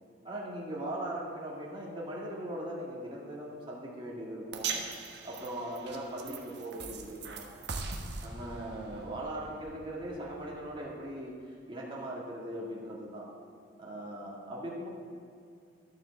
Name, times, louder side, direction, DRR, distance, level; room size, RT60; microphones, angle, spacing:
voice 1, 0.2-7.5 8.2-13.3 13.8-14.9, right 1 dB, 25° right, -5 dB, 1.8 m, -40 dB
sound 1, 4.5-10.9, right 4 dB, 55° right, 1.2 m, -41 dB
11.5 x 7.6 x 7.1 m, 2.4 s
head